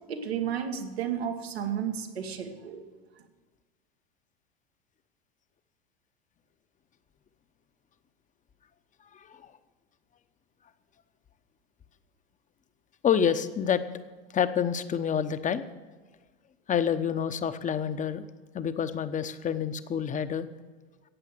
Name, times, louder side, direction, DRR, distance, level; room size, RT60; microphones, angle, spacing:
voice 1, 0.1-2.8, right 8 dB, 85° right, 5 dB, 1.7 m, -32 dB
voice 2, 9.1-9.5 13.0-13.8 14.3-15.6 16.7-18.2 18.5-20.5, left 8 dB, 25° left, 11 dB, 0.9 m, -28 dB
14.5 x 9.0 x 6.8 m, 1.3 s
hypercardioid pair, 90°, 30 cm